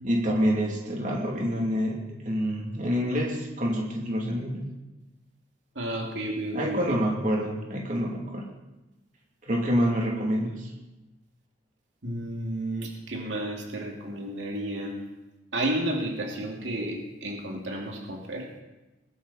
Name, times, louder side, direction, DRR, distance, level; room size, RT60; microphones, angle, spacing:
voice 1, 0.0-4.7 6.5-8.5 9.4-10.7, equal, 45° right, -1 dB, 3.0 m, -27 dB
voice 2, 5.7-7.0 12.0-15.0 15.5-18.6, right 1 dB, 80° right, 0 dB, 2.6 m, -32 dB
20.5 x 13.0 x 4.3 m, 1.0 s
head